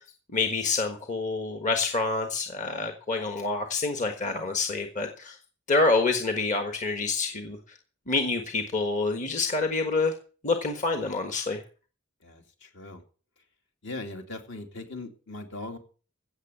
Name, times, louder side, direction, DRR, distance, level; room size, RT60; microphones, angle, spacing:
voice 1, 0.3-5.4 5.7-7.6 8.1-10.1 10.4-11.6, left 3 dB, 40° left, 5 dB, 1.4 m, -27 dB
voice 2, 12.2-13.0 13.8-15.8, left 2 dB, 65° left, 4 dB, 2.6 m, -39 dB
16.0 x 7.1 x 6.8 m, 0.39 s
head